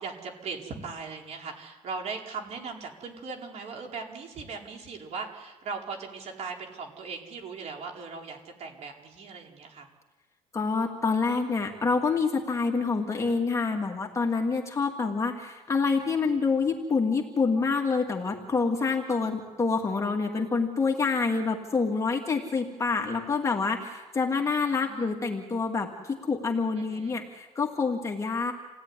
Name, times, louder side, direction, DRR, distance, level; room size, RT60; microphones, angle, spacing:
voice 1, 0.0-9.9 24.5-25.1 26.7-27.2, right 4 dB, 55° right, 1 dB, 4.6 m, -39 dB
voice 2, 10.5-28.5, left 4 dB, 20° left, 1 dB, 2.2 m, -27 dB
28.5 x 17.5 x 9.8 m, 1.2 s
cardioid pair, 145°, 13 cm